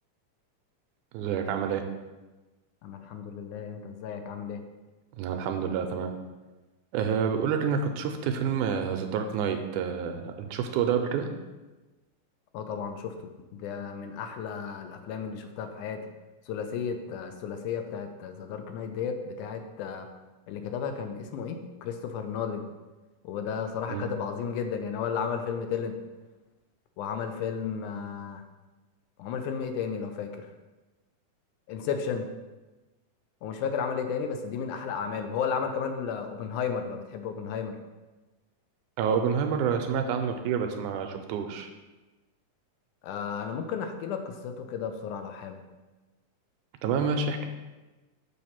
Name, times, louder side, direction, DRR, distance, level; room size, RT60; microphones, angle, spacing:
voice 1, 1.1-1.8 5.2-6.1 6.9-11.3 23.9-24.1 39.0-41.7 46.8-47.4, right 6 dB, 80° right, 5 dB, 2.0 m, -28 dB
voice 2, 2.8-4.6 12.5-16.0 16.5-20.1 20.5-22.7 23.2-26.0 27.0-28.4 29.2-30.5 31.7-32.3 33.4-37.8 43.0-45.6, left 6 dB, 80° left, 7 dB, 2.0 m, -33 dB
7.0 x 3.3 x 5.7 m, 1.2 s
omnidirectional pair, 3.6 m